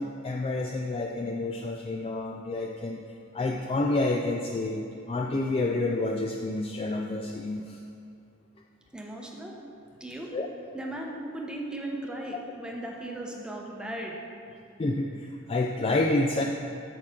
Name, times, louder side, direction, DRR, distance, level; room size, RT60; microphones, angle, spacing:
voice 1, 0.0-3.0 3.3-7.8 10.3-10.5 14.8-16.4, left 2 dB, 25° left, 1 dB, 0.3 m, -29 dB
voice 2, 8.9-9.5 10.0-10.3 10.7-14.2, right 1 dB, 5° right, -2 dB, 0.8 m, -37 dB
8.7 x 6.4 x 3.7 m, 2.5 s
head